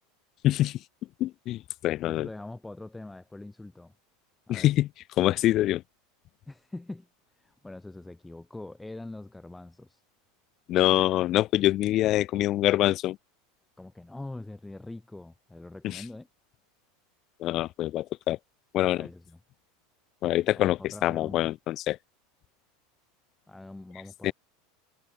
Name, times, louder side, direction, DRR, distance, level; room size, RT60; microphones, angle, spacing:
voice 1, 1.2-2.3 4.5-4.9 5.2-5.8 10.7-13.2 15.8-16.0 17.4-18.4 18.7-19.1 20.2-22.0 24.2-24.3, left 14 dB, 45° left, 0.6 m, -25 dB
voice 2, 2.0-3.9 4.5-4.7 6.5-7.1 7.4-10.0 13.8-16.3 19.0-19.4 20.5-21.4 23.5-24.3, left 2 dB, 10° left, 6.6 m, -43 dB
hypercardioid pair, 95°, 0 cm